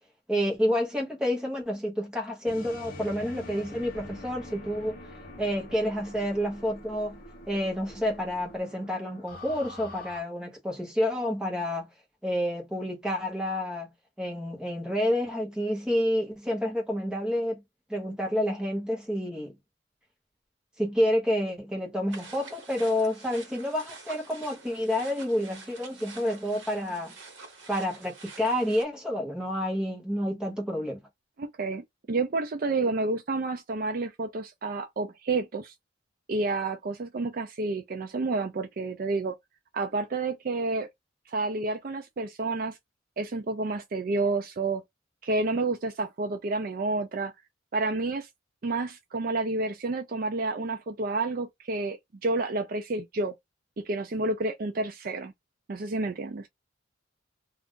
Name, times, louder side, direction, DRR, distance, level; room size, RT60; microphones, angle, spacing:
voice 1, 0.3-5.0 5.4-7.2 7.5-11.9 12.2-13.9 14.2-17.6 17.9-19.5 20.8-27.1 27.7-31.0, equal, 5° right, 0.9 m, -29 dB
sound 1, 2.5-10.2, left 1 dB, 45° left, 0.8 m, -45 dB
sound 2, 22.1-28.8, right 4 dB, 65° right, 1.1 m, -47 dB
voice 2, 31.4-31.8 32.1-35.7 36.3-39.3 39.7-40.9 41.3-42.8 43.2-44.8 45.2-47.3 47.7-48.3 48.6-53.3 53.8-55.3 55.7-56.5, right 3 dB, 45° right, 0.4 m, -30 dB
2.5 x 2.4 x 3.6 m
head